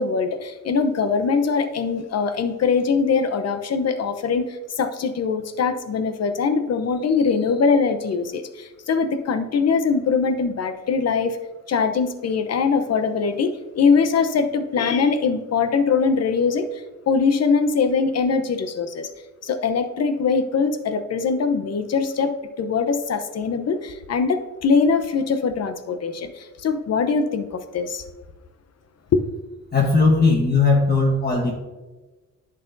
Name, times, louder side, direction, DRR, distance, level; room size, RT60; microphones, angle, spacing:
voice 1, 0.0-11.4 11.7-16.7 17.1-19.1 19.4-22.3 22.6-28.0 29.1-29.2, left 5 dB, 55° left, 9 dB, 0.9 m, -22 dB
voice 2, 29.7-31.5, left 3 dB, 30° left, -1 dB, 1.4 m, -18 dB
10.5 x 6.7 x 2.7 m, 1.2 s
cardioid pair, 90°, 32 cm